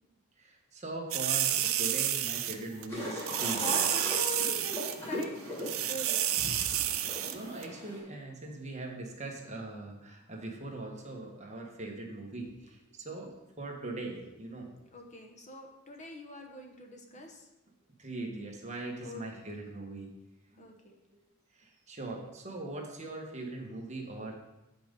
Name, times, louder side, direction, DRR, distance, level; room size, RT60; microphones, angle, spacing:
voice 1, 0.4-3.8 7.3-14.7 18.0-20.2 20.5-20.7 21.1-21.2 21.5-24.3, right 2 dB, 30° right, 0 dB, 1.4 m, -41 dB
sound 1, 1.1-2.6 2.8-2.9 3.2-5.0 5.2-5.3 5.6-7.4 7.6-7.7, right 12 dB, 70° right, 0.6 m, -30 dB
sound 2, 2.9-8.0, equal, 10° left, 3.0 m, -40 dB
voice 2, 3.6-5.4 5.8-7.0 14.9-17.5 19.0-19.5 20.6-21.0, left 2 dB, 35° left, 2 dB, 1.0 m, -42 dB
8.6 x 6.0 x 5.3 m, 0.94 s
head